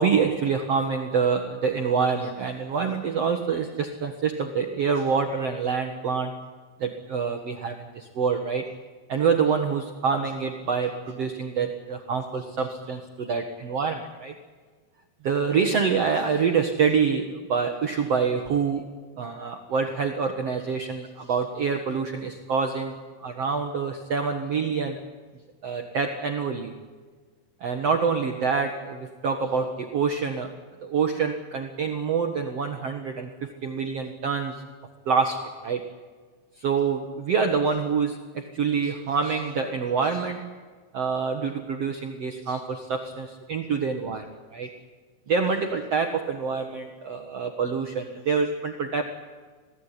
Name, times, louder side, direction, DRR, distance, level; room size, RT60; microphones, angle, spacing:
voice 1, 0.0-6.4 6.8-8.8 9.1-14.3 15.2-18.9 19.2-25.0 25.6-26.7 27.6-30.5 30.8-34.6 35.0-35.9 36.6-40.5 40.9-44.8 45.3-49.0, right 5 dB, 85° right, 5 dB, 1.4 m, -26 dB
27.0 x 18.0 x 10.0 m, 1.5 s
omnidirectional pair, 5.2 m